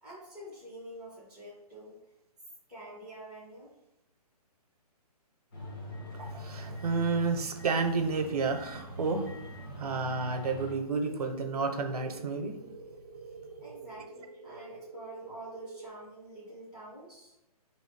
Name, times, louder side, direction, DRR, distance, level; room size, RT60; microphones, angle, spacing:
voice 1, 0.0-2.0 2.7-3.8 13.6-17.3, right 1 dB, 10° left, -11 dB, 0.4 m, -47 dB
sound 1, 5.5-10.7, equal, 35° left, 0.7 m, -44 dB
voice 2, 6.2-12.6, right 4 dB, 70° right, 6 dB, 0.7 m, -31 dB
sound 2, 10.9-15.9, right 4 dB, 40° right, 0.5 m, -47 dB
4.3 x 3.0 x 3.2 m, 0.96 s
hypercardioid pair, 180°, 20 cm